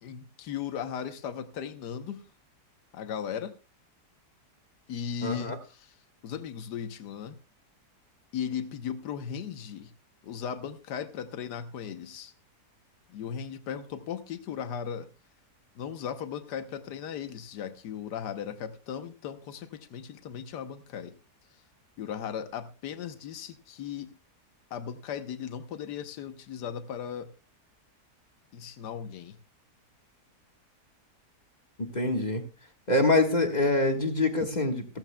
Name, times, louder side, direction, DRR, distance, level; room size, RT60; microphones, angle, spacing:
voice 1, 0.0-2.2 2.9-3.5 4.9-5.9 6.2-7.4 8.3-9.9 10.2-12.3 13.1-15.1 15.7-21.1 22.0-24.1 24.7-27.3 28.5-29.4, left 8 dB, 85° left, 10 dB, 1.5 m, -37 dB
voice 2, 5.2-5.6 31.8-32.4 32.9-35.0, left 2 dB, 25° left, 4 dB, 1.4 m, -25 dB
15.5 x 15.0 x 2.2 m, 0.31 s
omnidirectional pair, 1.8 m